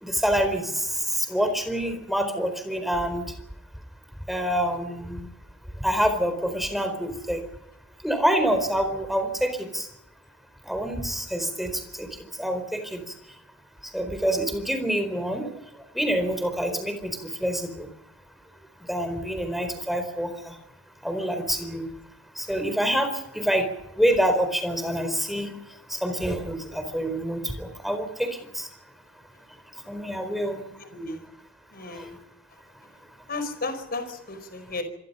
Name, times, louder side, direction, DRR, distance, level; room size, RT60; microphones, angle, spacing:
voice 1, 0.0-3.2 4.3-5.3 5.8-7.4 8.0-9.9 10.7-13.0 13.8-15.6 15.9-17.9 18.9-20.6 21.0-21.9 22.4-23.7 24.0-25.5 25.9-28.7 29.9-30.6 31.9-32.1, equal, ahead, 7 dB, 4.3 m, -27 dB
voice 2, 30.9-31.2 31.7-32.1 33.3-34.8, left 3 dB, 45° left, 10 dB, 4.8 m, -33 dB
27.0 x 22.5 x 5.6 m, 0.83 s
head